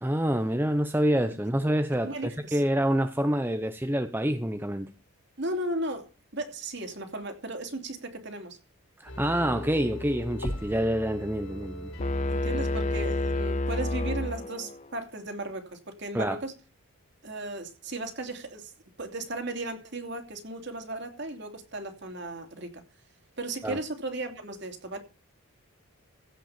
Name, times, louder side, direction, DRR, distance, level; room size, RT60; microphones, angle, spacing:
voice 1, 0.0-4.9 9.0-11.9 16.1-16.4 23.6-23.8, equal, 10° right, 0.7 m, -27 dB
voice 2, 2.0-2.6 5.4-6.1 6.3-8.6 12.3-16.5 17.2-18.7 19.0-22.8 23.4-25.0, right 2 dB, 50° right, 2.8 m, -36 dB
sound 1, 9.1-13.5 13.8-13.9, left 1 dB, 75° left, 5.5 m, -39 dB
sound 2, 12.0-14.9, left 2 dB, 30° left, 0.6 m, -29 dB
16.5 x 5.5 x 7.2 m
head